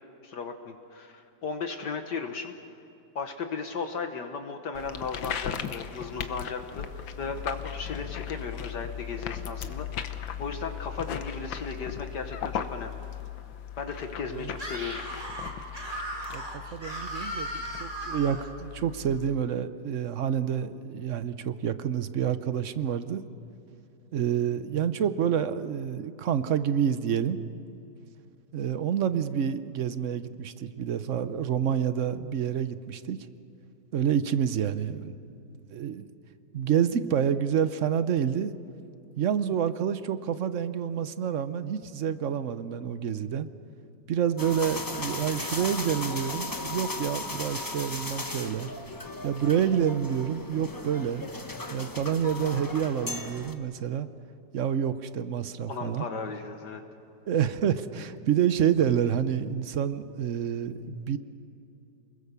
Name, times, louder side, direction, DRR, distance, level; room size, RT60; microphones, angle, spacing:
voice 1, 0.2-2.5 3.2-13.0 13.8-15.0 55.7-56.8, left 5 dB, 65° left, 5 dB, 1.7 m, -36 dB
sound 1, 4.7-19.4, left 9 dB, 85° left, 1.7 m, -38 dB
Screaming, 14.5-18.5, right 1 dB, 20° right, 2.7 m, -36 dB
voice 2, 16.3-23.2 24.1-27.4 28.5-33.2 33.9-35.1 35.7-36.1 36.5-38.5 39.2-43.5 44.1-48.7 49.2-51.3 51.7-54.1 54.5-56.1 57.3-61.2, right 8 dB, 55° right, 12 dB, 0.9 m, -28 dB
sound 2, 44.4-53.5, left 2 dB, 15° left, 0.8 m, -36 dB
28.5 x 21.0 x 6.9 m, 2.7 s
omnidirectional pair, 2.0 m